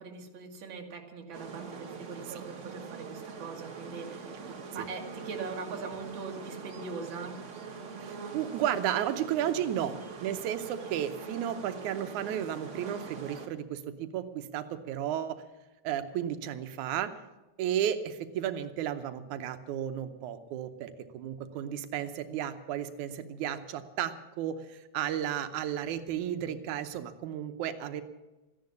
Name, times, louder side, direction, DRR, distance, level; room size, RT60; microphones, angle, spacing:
voice 1, 0.0-7.4, right 4 dB, 45° right, 1 dB, 2.3 m, -41 dB
sound 1, 1.3-13.5, right 5 dB, 60° right, 0.7 m, -43 dB
voice 2, 8.0-10.0 10.2-15.4 15.8-17.1 17.6-28.0, right 10 dB, 90° right, 8 dB, 2.3 m, -33 dB
14.5 x 10.5 x 8.4 m, 1.1 s
omnidirectional pair, 3.3 m